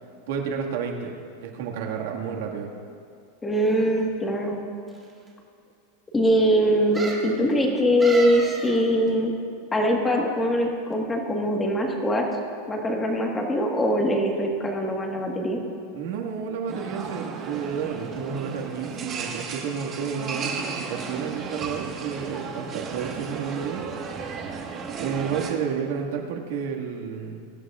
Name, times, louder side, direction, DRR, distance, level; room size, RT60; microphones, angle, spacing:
voice 1, 0.3-1.1 1.4-2.7 15.9-23.8 25.0-27.5, right 6 dB, 65° right, 0 dB, 1.9 m, -31 dB
voice 2, 3.4-4.6 6.1-9.3 9.7-12.3 12.7-15.6, equal, 10° left, 0 dB, 1.6 m, -22 dB
sound 1, 3.5-4.1 4.9-5.0 5.3-5.4 6.9-7.3 8.0-8.8 9.1-9.2, right 3 dB, 10° right, 1.8 m, -34 dB
sound 2, 16.7-25.5, right 5 dB, 25° right, 1.5 m, -34 dB
23.5 x 11.5 x 2.5 m, 2.4 s
supercardioid pair, 155°, 0 cm